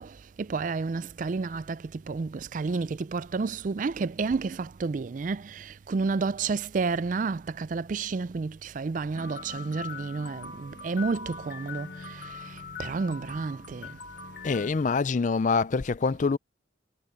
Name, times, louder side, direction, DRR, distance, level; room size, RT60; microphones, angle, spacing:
voice 1, 0.0-14.0, right 4 dB, 45° right, 0.4 m, -31 dB
sound 1, 9.1-14.7, left 5 dB, 60° left, 1.5 m, -42 dB
voice 2, 14.4-16.4, left 4 dB, 40° left, 0.4 m, -25 dB
head